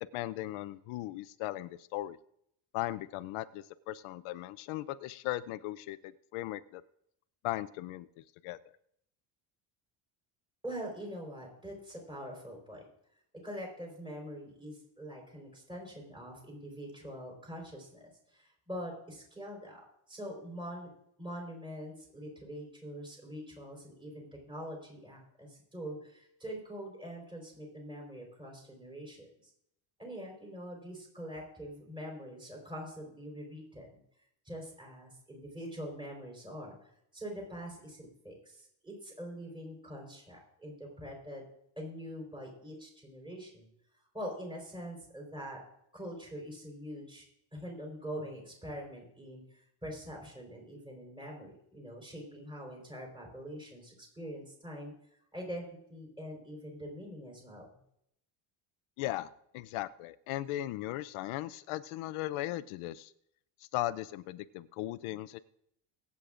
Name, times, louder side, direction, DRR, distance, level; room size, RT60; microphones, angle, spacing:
voice 1, 0.1-2.2 2.7-6.8 7.4-8.1 8.4-8.6 59.0-63.1 63.7-65.4, left 15 dB, 80° left, 14 dB, 0.6 m, -37 dB
voice 2, 10.6-12.8 13.4-19.8 20.1-20.9 21.2-29.3 30.0-34.0 34.4-41.4 41.8-43.7 44.1-45.6 45.9-47.2 47.5-49.4 49.8-54.9 55.3-57.7, equal, 10° right, 0 dB, 4.2 m, -44 dB
24.0 x 8.4 x 2.5 m, 0.74 s
cardioid pair, 170°, 49 cm